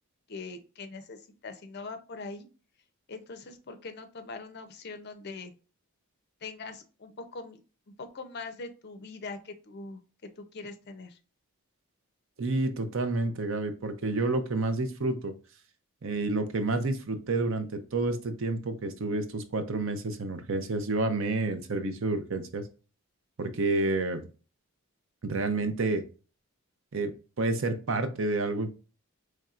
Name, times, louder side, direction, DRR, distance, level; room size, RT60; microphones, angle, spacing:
voice 1, 0.3-2.5 3.1-5.5 6.4-7.6 7.9-10.0 10.4-11.2, left 3 dB, 45° left, 9 dB, 0.5 m, -42 dB
voice 2, 12.4-15.3 16.0-22.6 23.4-24.3 25.2-26.0 26.9-27.1 27.4-28.7, right 2 dB, 60° right, 8 dB, 0.6 m, -29 dB
4.4 x 3.2 x 2.4 m, 0.35 s
head